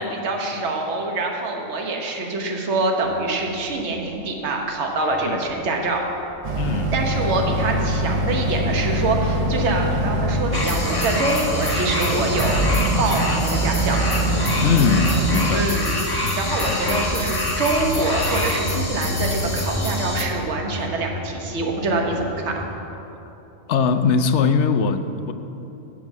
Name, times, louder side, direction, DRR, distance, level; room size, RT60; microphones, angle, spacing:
voice 1, 0.0-6.0 6.9-12.7 13.0-14.0 15.5-15.9 16.4-22.6, right 2 dB, 60° right, 1 dB, 1.3 m, -25 dB
sound 1, 3.0-4.7 4.9-22.7, left 1 dB, 50° left, 1.9 m, -35 dB
Boat Water vehicle, 6.4-15.5, right 1 dB, 35° right, 0.5 m, -24 dB
voice 2, 6.6-7.0 14.6-15.7 16.7-17.1 20.7-20.9 23.7-25.3, left 5 dB, 65° left, 9 dB, 0.8 m, -21 dB
sound 2, 10.5-20.3, left 1 dB, 20° left, 0.9 m, -26 dB
7.9 x 7.5 x 7.1 m, 3.0 s
omnidirectional pair, 1.3 m